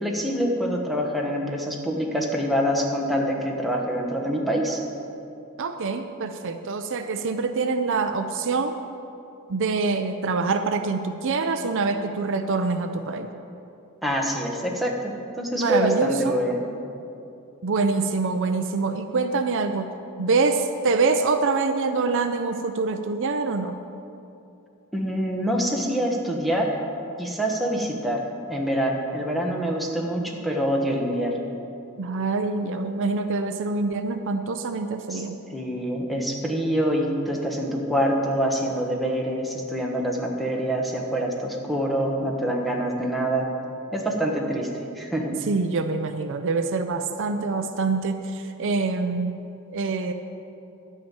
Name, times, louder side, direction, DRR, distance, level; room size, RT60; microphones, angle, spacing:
voice 1, 0.0-4.8 14.0-16.7 24.9-26.7 27.2-28.2 28.5-31.3 35.1-35.2 35.5-43.5 43.9-44.7 44.9-45.4, equal, ahead, -1 dB, 1.2 m, -25 dB
voice 2, 5.6-8.8 9.5-13.3 15.6-16.4 17.6-19.9 20.2-23.8 32.0-35.4 45.5-49.4 49.7-50.1, right 4 dB, 60° right, 8 dB, 0.5 m, -25 dB
11.5 x 5.8 x 8.8 m, 2.7 s
head